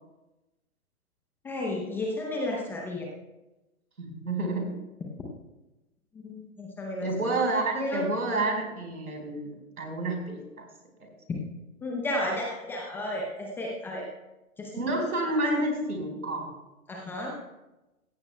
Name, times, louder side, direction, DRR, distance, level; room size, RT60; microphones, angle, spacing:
voice 1, 1.4-3.1 6.1-7.3 7.8-8.0 11.8-14.0 14.6-14.7 15.4-15.6 16.9-17.3, left 1 dB, 5° left, -1 dB, 0.6 m, -33 dB
voice 2, 4.0-4.8 7.0-9.5 9.8-10.7 14.7-16.5, right 2 dB, 80° right, 1 dB, 4.5 m, -29 dB
16.5 x 15.5 x 2.2 m, 1.0 s
figure-of-eight pair, 130°, 43 cm